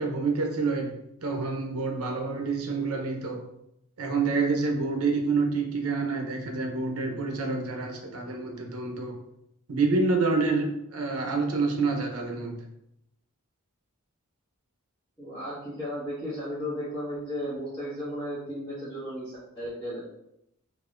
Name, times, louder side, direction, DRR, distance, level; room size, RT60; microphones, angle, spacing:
voice 1, 0.0-3.4 4.0-9.2 9.7-12.6, right 4 dB, 80° right, 3 dB, 0.7 m, -28 dB
voice 2, 15.2-20.0, equal, 10° left, -14 dB, 1.5 m, -34 dB
4.1 x 2.9 x 2.5 m, 0.80 s
head